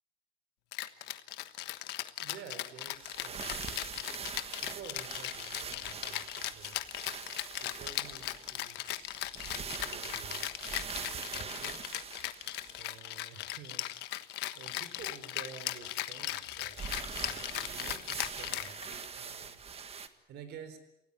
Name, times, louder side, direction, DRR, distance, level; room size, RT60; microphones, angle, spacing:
Rattle (instrument), 0.7-19.2, left 15 dB, 90° left, 1.3 m, -38 dB
voice 1, 2.2-3.7 4.6-6.8 7.6-11.8 12.8-13.9 14.5-16.9 17.2-19.6 20.3-20.8, right 7 dB, 75° right, 10 dB, 4.4 m, -51 dB
sound 1, 2.9-13.0 16.7-20.1, right 6 dB, 35° right, 1.7 m, -43 dB
28.5 x 18.0 x 8.8 m, 0.88 s
cardioid pair, 110°, 17 cm